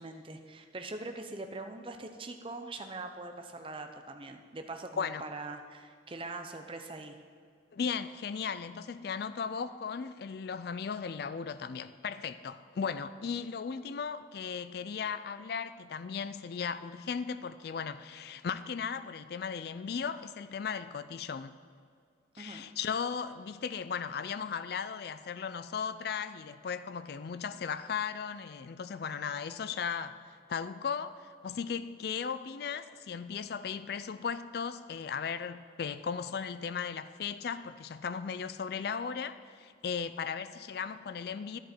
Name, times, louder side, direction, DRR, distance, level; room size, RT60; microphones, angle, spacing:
voice 1, 0.0-7.2 22.4-22.6, right 2 dB, 25° right, 5 dB, 0.6 m, -42 dB
voice 2, 7.7-21.5 22.4-30.2 30.5-41.6, left 6 dB, 55° left, 13 dB, 0.3 m, -36 dB
10.5 x 10.5 x 4.4 m, 2.1 s
head